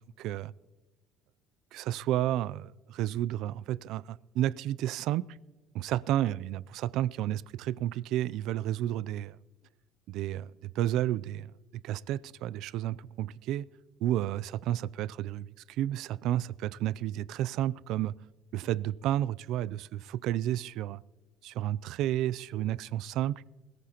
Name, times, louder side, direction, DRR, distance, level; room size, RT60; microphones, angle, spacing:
voice 1, 0.2-0.5 1.7-5.2 5.7-9.4 10.1-11.5 11.8-13.6 14.0-18.1 18.5-21.0 21.4-23.3, right 13 dB, 65° right, 21 dB, 0.3 m, -31 dB
21.0 x 14.5 x 2.9 m, 1.2 s
cardioid pair, 140°, 0 cm